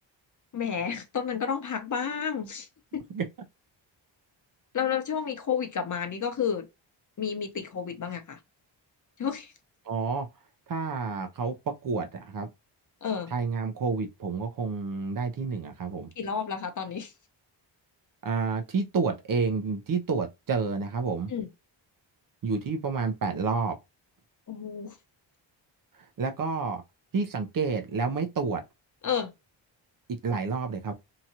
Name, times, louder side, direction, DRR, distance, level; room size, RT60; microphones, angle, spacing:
voice 1, 0.5-2.7 2.9-3.0 4.7-6.7 7.2-8.4 9.2-9.5 13.0-13.3 16.2-17.1 21.3-21.5 24.5-25.0 29.0-29.3, left 7 dB, 40° left, 0.8 m, -31 dB
voice 2, 9.9-10.3 10.7-12.5 13.3-16.1 18.2-21.3 22.4-23.8 26.2-26.8 27.1-28.6 30.2-30.9, right 4 dB, 45° right, 0.7 m, -29 dB
2.9 x 2.4 x 2.8 m
cardioid pair, 85°, 47 cm